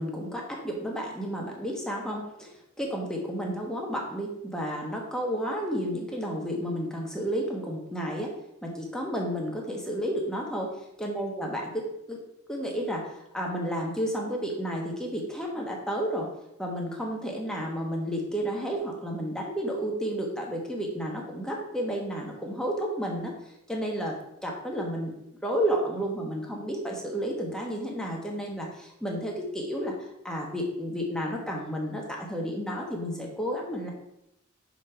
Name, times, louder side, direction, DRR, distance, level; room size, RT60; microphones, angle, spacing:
voice 1, 0.0-8.3 8.6-12.2 12.5-16.3 16.6-23.3 23.7-24.1 24.4-25.1 25.4-29.9 30.2-33.9, equal, 5° left, -2 dB, 1.1 m, -31 dB
6.2 x 4.0 x 4.4 m, 0.80 s
head